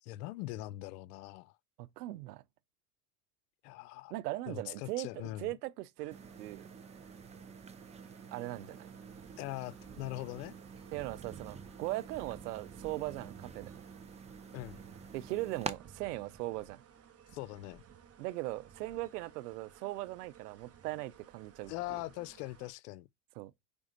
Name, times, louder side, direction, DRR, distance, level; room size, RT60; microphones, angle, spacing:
voice 1, 0.0-1.5 3.6-4.1 4.5-5.5 9.4-10.5 14.5-14.8 17.3-17.8 21.7-23.1, left 17 dB, 80° left, 0.6 m, -41 dB
voice 2, 1.8-2.4 4.1-6.7 8.3-8.9 10.9-13.7 15.1-16.8 18.2-21.7 23.4-23.5, right 17 dB, 90° right, 0.7 m, -39 dB
sound 1, 6.0-22.7, right 7 dB, 30° right, 1.2 m, -56 dB
sound 2, 6.1-15.7, right 5 dB, 15° right, 0.6 m, -48 dB
5.3 x 3.6 x 5.1 m
supercardioid pair, 100°, 46 cm